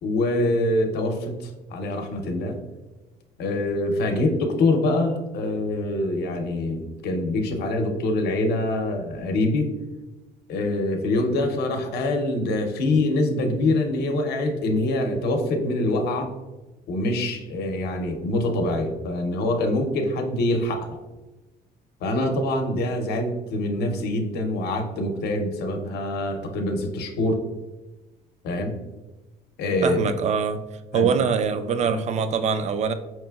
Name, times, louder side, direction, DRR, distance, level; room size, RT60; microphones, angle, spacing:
voice 1, 0.0-2.6 3.4-9.7 10.5-16.3 16.9-21.0 22.0-27.4 28.4-28.7 29.6-30.1 30.9-31.1 31.8-32.0, left 2 dB, 70° left, 5 dB, 0.7 m, -25 dB
voice 2, 29.8-30.6 30.9-32.9, right 6 dB, 45° right, 10 dB, 0.4 m, -23 dB
4.8 x 3.0 x 2.3 m, 1.1 s
cardioid pair, 110°, 17 cm